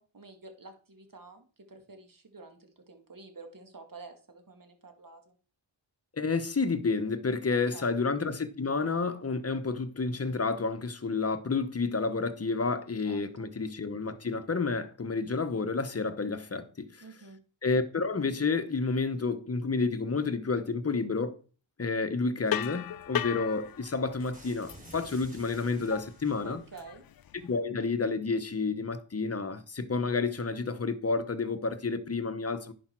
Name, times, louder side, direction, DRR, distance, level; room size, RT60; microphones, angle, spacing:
voice 1, 0.0-5.3 7.5-7.9 13.0-13.5 17.0-17.4 26.4-27.0, right 3 dB, 45° right, 2.0 m, -49 dB
voice 2, 6.1-17.0 17.6-21.4 21.8-26.6 27.4-32.7, left 4 dB, 30° left, 1.0 m, -30 dB
sound 1, 22.5-27.6, left 10 dB, 50° left, 0.5 m, -37 dB
sound 2, 24.3-26.8, right 1 dB, 15° right, 3.3 m, -52 dB
10.5 x 5.1 x 4.5 m
wide cardioid pair, 80°, 46 cm